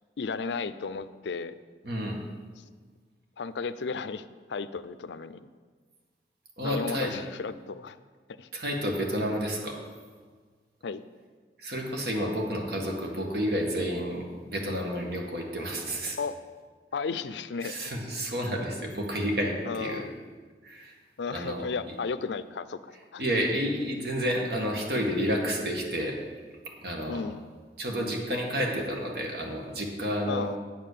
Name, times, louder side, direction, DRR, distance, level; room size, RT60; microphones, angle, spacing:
voice 1, 0.2-1.5 2.6-2.7 3.4-5.5 6.6-8.0 8.4-8.5 10.8-11.0 16.2-16.3 16.9-17.9 19.6-20.1 21.2-23.2 27.1-27.5 30.3-30.6, left 5 dB, 85° left, 14 dB, 0.5 m, -34 dB
voice 2, 1.8-2.2 6.6-7.1 8.5-9.8 11.6-16.2 17.6-20.0 20.6-21.0 21.3-21.6 23.2-26.2 26.7-27.2 27.8-30.5, equal, 60° right, 0 dB, 1.8 m, -30 dB
8.9 x 7.4 x 6.8 m, 1.5 s
head